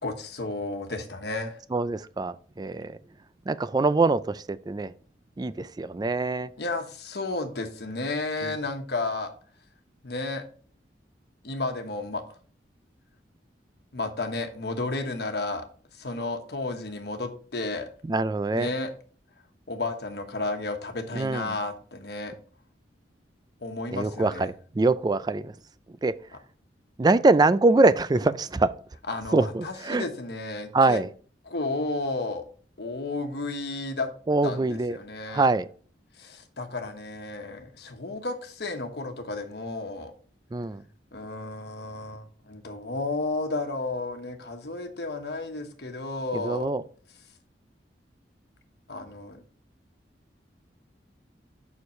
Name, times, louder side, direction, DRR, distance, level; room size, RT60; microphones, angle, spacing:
voice 1, 0.0-1.6 6.6-9.3 10.0-10.4 11.4-12.2 13.9-15.7 15.9-17.9 18.5-18.9 19.7-22.3 23.6-24.5 29.1-31.0 31.5-32.4 32.8-34.1 34.4-35.5 36.1-40.1 41.1-46.7 48.9-49.4, left 2 dB, 65° left, 1.2 m, -32 dB
voice 2, 1.7-3.0 3.5-4.9 5.4-6.5 8.4-8.5 18.1-18.7 21.1-21.5 23.9-25.5 26.0-26.1 27.0-28.7 29.3-30.0 30.7-31.1 34.3-35.0 35.3-35.7 40.5-40.8 46.3-46.8, right 3 dB, 25° right, 0.3 m, -24 dB
7.1 x 6.4 x 3.1 m
head